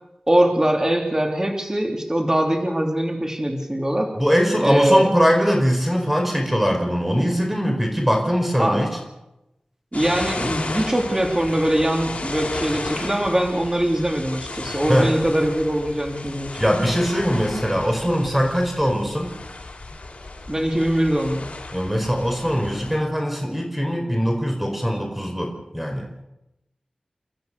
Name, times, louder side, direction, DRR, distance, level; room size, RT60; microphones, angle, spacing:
voice 1, 0.3-4.1 4.6-5.1 8.6-8.8 9.9-16.6 20.5-21.5, right 1 dB, 25° right, 3 dB, 3.3 m, -22 dB
voice 2, 4.2-8.9 14.9-15.1 16.6-19.3 21.7-26.1, equal, 5° right, 2 dB, 4.8 m, -21 dB
sound 1, 9.9-23.0, left 2 dB, 65° left, 5.4 m, -34 dB
29.5 x 13.5 x 6.9 m, 0.90 s
wide cardioid pair, 60°, 2 cm